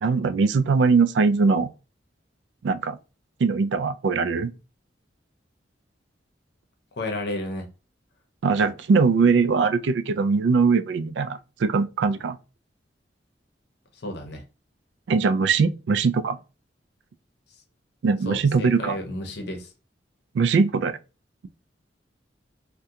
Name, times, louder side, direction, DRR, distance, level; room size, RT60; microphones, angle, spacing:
voice 1, 0.0-1.7 2.6-3.0 3.4-4.5 8.4-12.4 15.1-16.4 18.0-19.0 20.3-21.0, right 4 dB, 70° right, 0.3 m, -21 dB
voice 2, 7.0-7.7 13.9-14.4 18.2-19.7, left 1 dB, 65° left, 0.7 m, -32 dB
3.6 x 2.2 x 2.7 m
head